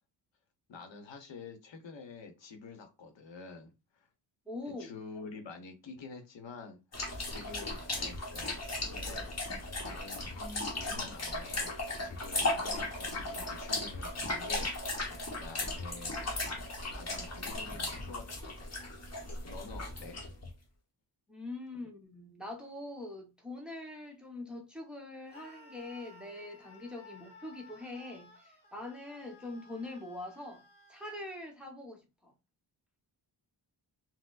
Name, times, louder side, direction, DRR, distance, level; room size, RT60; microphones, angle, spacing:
voice 1, 0.7-4.1 4.7-6.8 7.2-8.6 8.9-9.6 9.8-14.7 15.1-16.2 16.9-18.9 19.4-20.2, left 4 dB, 70° left, 0.8 m, -48 dB
voice 2, 4.5-4.9 21.3-30.6 30.9-32.3, left 2 dB, ahead, 0.8 m, -43 dB
sound 1, 6.9-20.5, left 2 dB, 35° left, 0.9 m, -36 dB
Screaming, 25.3-31.2, left 2 dB, 15° left, 1.4 m, -56 dB
4.3 x 2.1 x 2.4 m
wide cardioid pair, 110°, 45 cm